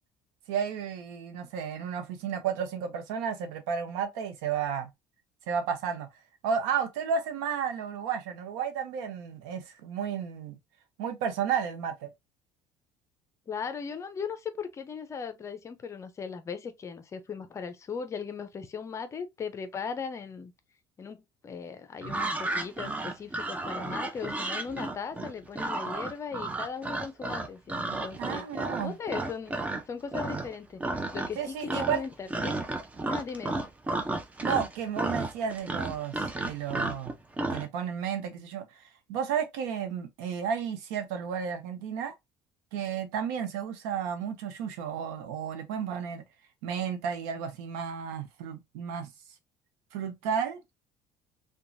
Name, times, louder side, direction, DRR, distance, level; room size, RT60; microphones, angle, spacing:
voice 1, 0.5-4.9 5.5-6.1 6.4-10.6 11.0-12.1 28.2-28.9 31.4-32.0 34.4-37.1 37.5-38.7 39.1-42.1 42.7-46.2 46.6-49.1 49.9-50.7, right 7 dB, 90° right, 0.7 m, -32 dB
voice 2, 13.5-20.5 21.0-30.8 31.1-32.6 33.1-33.6, left 6 dB, 30° left, 0.6 m, -38 dB
sound 1, 22.0-29.8 30.1-30.5 30.8-31.4 31.7-37.7, right 2 dB, 15° right, 0.6 m, -32 dB
2.9 x 2.3 x 2.6 m
supercardioid pair, 100°, 9 cm